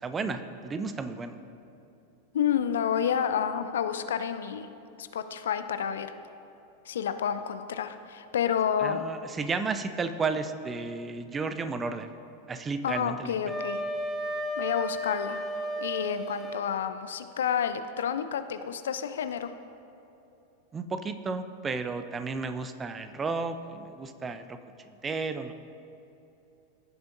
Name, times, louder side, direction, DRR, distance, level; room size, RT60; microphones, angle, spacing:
voice 1, 0.0-1.4 8.8-12.1 12.5-13.5 20.7-25.5, right 4 dB, 20° right, 9 dB, 0.5 m, -33 dB
voice 2, 2.3-4.7 5.0-6.1 6.9-9.1 12.8-13.8 14.6-15.4 15.8-19.5, left 8 dB, 60° left, 11 dB, 0.4 m, -29 dB
Wind instrument woodwind instrument, 13.5-16.6, equal, 5° left, 1.0 m, -33 dB
16.0 x 6.9 x 2.6 m, 2.9 s
figure-of-eight pair, 90°, 0 cm